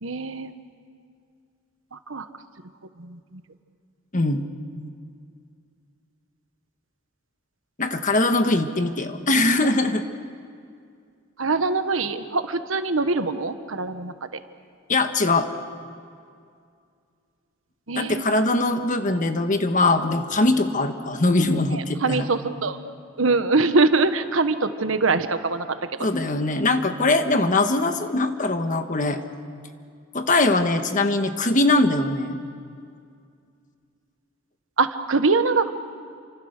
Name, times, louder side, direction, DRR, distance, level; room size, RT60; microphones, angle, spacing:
voice 1, 0.0-0.5 1.9-2.3 3.0-3.4 11.4-14.3 17.9-18.2 19.0-19.2 21.7-22.8 23.2-25.7 34.8-35.7, right 3 dB, 80° right, 9 dB, 1.3 m, -23 dB
voice 2, 4.1-4.5 7.8-10.0 14.9-15.5 17.9-22.3 26.0-29.2 30.1-32.4, left 2 dB, 40° left, 7 dB, 1.5 m, -21 dB
28.5 x 25.0 x 6.6 m, 2.3 s
head